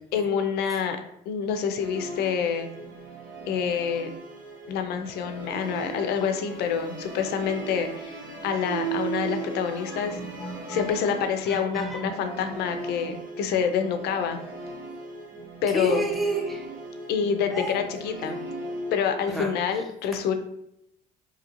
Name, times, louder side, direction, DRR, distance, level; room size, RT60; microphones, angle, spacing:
voice 1, 0.1-1.0 1.3-2.7 3.5-4.1 4.7-10.2 10.7-14.4 15.6-16.1 17.1-18.4 18.9-20.3, left 7 dB, 70° left, 7 dB, 0.4 m, -27 dB
Musical instrument, 1.8-19.4, right 4 dB, 55° right, 0.8 m, -37 dB
voice 2, 9.7-11.0 11.5-12.1 13.0-13.2 15.7-16.6 17.5-17.8 19.3-19.5, right 1 dB, ahead, -1 dB, 0.5 m, -31 dB
2.8 x 2.5 x 2.9 m, 0.78 s
cardioid pair, 110°, 17 cm